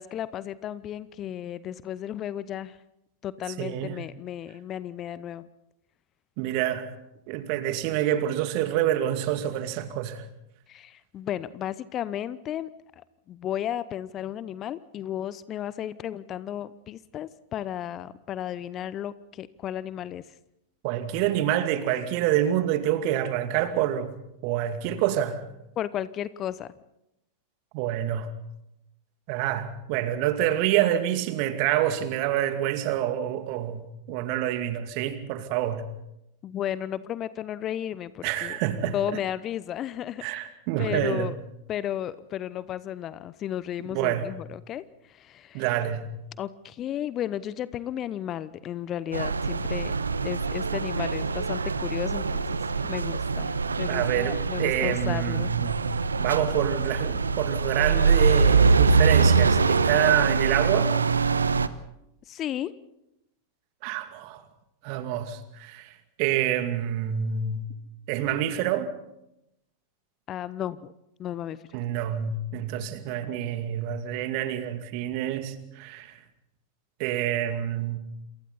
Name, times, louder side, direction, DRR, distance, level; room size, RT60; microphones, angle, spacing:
voice 1, 0.0-2.8 3.2-5.5 10.7-20.2 25.8-26.7 36.4-38.6 38.9-40.2 40.8-41.4 41.7-45.6 46.4-49.9 50.2-55.5 62.3-62.7 70.3-70.9 71.2-71.8, left 11 dB, 30° left, 0.9 m, -34 dB
voice 2, 3.6-4.0 6.4-6.9 7.3-10.3 20.8-25.4 27.7-28.3 29.3-35.9 38.2-38.9 40.2-41.3 43.9-44.3 45.5-46.1 53.9-55.8 56.2-61.0 63.8-64.4 64.8-67.6 68.1-68.9 71.7-76.2 77.0-78.0, right 11 dB, 45° right, 2.4 m, -27 dB
sound 1, 49.1-61.7, right 4 dB, 75° right, 1.0 m, -24 dB
28.5 x 27.5 x 4.2 m
figure-of-eight pair, 90°, 0 cm